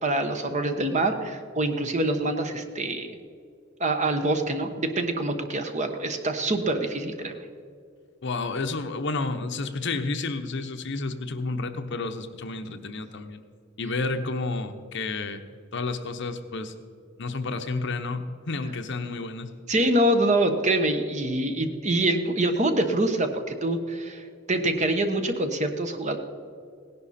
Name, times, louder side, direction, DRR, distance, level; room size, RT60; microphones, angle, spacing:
voice 1, 0.0-3.2 3.8-7.3 19.7-26.2, right 1 dB, 35° right, 7 dB, 1.1 m, -25 dB
voice 2, 8.2-13.4 13.8-15.4 15.7-16.7 17.2-19.5, left 3 dB, 60° left, 8 dB, 0.9 m, -31 dB
17.5 x 11.0 x 4.3 m, 2.3 s
head